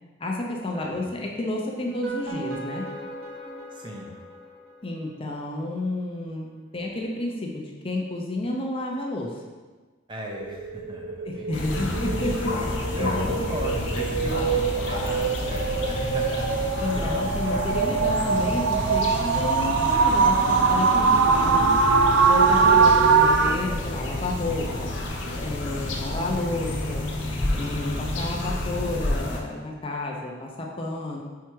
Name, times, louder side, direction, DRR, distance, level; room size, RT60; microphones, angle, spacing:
voice 1, 0.2-2.9 4.8-6.5 6.7-9.4 11.2-13.5 16.8-21.8 22.2-24.9 25.4-27.1 27.5-31.2, left 2 dB, 25° left, -1 dB, 0.6 m, -31 dB
sound 1, 1.8-5.0, right 2 dB, 45° right, 1.3 m, -37 dB
voice 2, 3.7-4.1 10.1-11.6 12.9-17.3, right 1 dB, 25° right, -1 dB, 0.7 m, -37 dB
sound 2, 10.3-23.6, right 5 dB, 80° right, 0.5 m, -22 dB
sound 3, 11.5-29.4, left 1 dB, 70° left, 0.9 m, -30 dB
4.7 x 4.6 x 4.6 m, 1.3 s
head